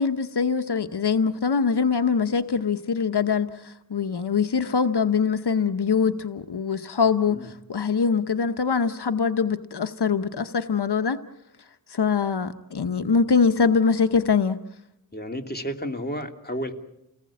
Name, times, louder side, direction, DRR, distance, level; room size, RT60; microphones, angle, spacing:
voice 1, 0.0-11.2 11.9-14.6, left 5 dB, 80° left, 9 dB, 1.0 m, -23 dB
voice 2, 15.1-16.7, equal, 25° left, 3 dB, 2.8 m, -32 dB
29.5 x 19.5 x 8.5 m, 0.84 s
wide cardioid pair, 55°, 39 cm